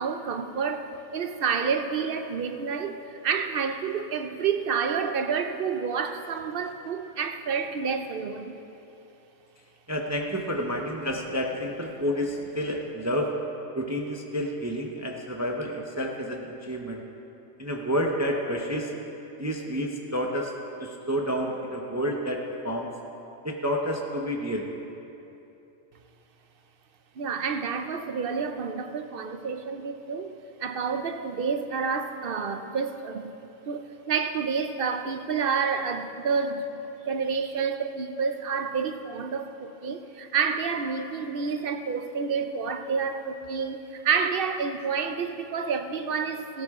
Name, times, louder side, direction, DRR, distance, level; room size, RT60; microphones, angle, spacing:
voice 1, 0.0-8.6 27.2-30.3 30.6-33.3 33.7-46.6, right 5 dB, 55° right, 0.7 m, -29 dB
voice 2, 9.9-13.4 13.7-17.0 17.6-18.9 19.4-20.5 20.8-22.9 23.4-24.7, equal, 15° right, 0.7 m, -29 dB
16.5 x 12.5 x 3.7 m
omnidirectional pair, 1.4 m